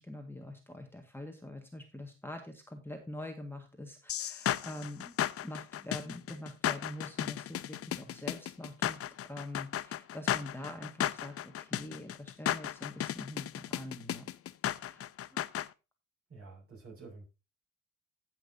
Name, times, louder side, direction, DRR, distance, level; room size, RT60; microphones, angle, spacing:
voice 1, 0.0-5.1 5.4-14.3 14.8-15.1, left 1 dB, 5° left, 3 dB, 1.7 m, -45 dB
sound 1, 4.1-15.7, left 11 dB, 50° left, 0.6 m, -34 dB
voice 2, 16.3-17.3, right 3 dB, 50° right, 0 dB, 6.4 m, -49 dB
18.0 x 6.0 x 2.7 m, 0.28 s
cardioid pair, 90°, 30 cm